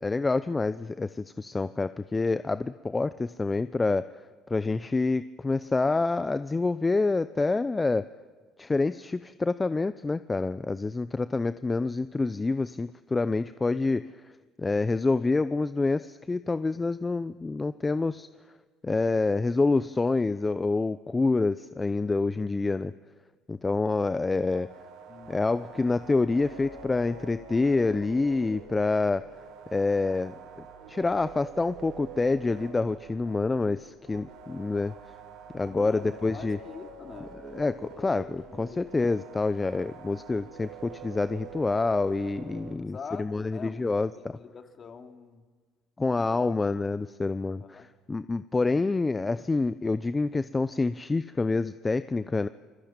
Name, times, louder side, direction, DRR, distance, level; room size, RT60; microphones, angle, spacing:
voice 1, 0.0-4.2 4.5-8.1 8.6-14.3 14.6-18.3 18.8-22.9 23.5-24.7 25.3-29.2 29.7-34.9 35.5-36.6 37.4-44.1 46.0-52.5, left 3 dB, 20° left, 13 dB, 0.7 m, -27 dB
sound 1, 24.4-42.7, right 6 dB, 75° right, 5.2 m, -46 dB
voice 2, 25.1-25.5 35.7-37.4 37.9-38.9 39.7-39.9 42.8-45.4 46.3-46.6 47.2-47.9, left 6 dB, 40° left, 5 dB, 2.9 m, -45 dB
28.5 x 21.5 x 9.0 m, 1.5 s
supercardioid pair, 75°, 0 cm